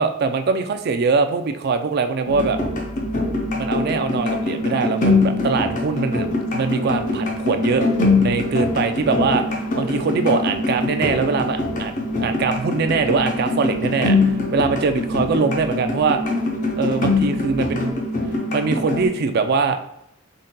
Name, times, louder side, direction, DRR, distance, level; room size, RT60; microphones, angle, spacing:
voice 1, 0.0-2.6 3.6-7.8 8.2-16.2 16.8-18.0 18.5-19.8, right 4 dB, 50° right, 8 dB, 0.4 m, -22 dB
sound 1, 2.3-19.1, left 2 dB, 40° left, 0.6 m, -23 dB
4.0 x 3.8 x 2.2 m, 0.81 s
head